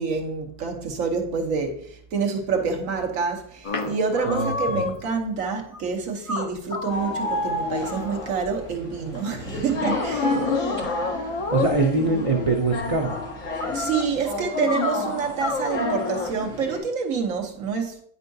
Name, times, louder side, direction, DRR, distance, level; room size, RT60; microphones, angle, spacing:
voice 1, 0.0-10.5 13.7-18.0, right 5 dB, 85° right, 1.4 m, -27 dB
sound 1, 3.6-5.1 5.7-5.8 6.3-8.7 9.9-11.8 13.6-14.1 14.7-15.0 15.4-16.4, left 4 dB, 40° left, 0.5 m, -29 dB
sound 2, 6.9-16.8, left 2 dB, 85° left, 1.7 m, -30 dB
voice 2, 11.3-13.2, right 3 dB, 40° right, 0.5 m, -23 dB
9.6 x 4.6 x 2.6 m
omnidirectional pair, 1.3 m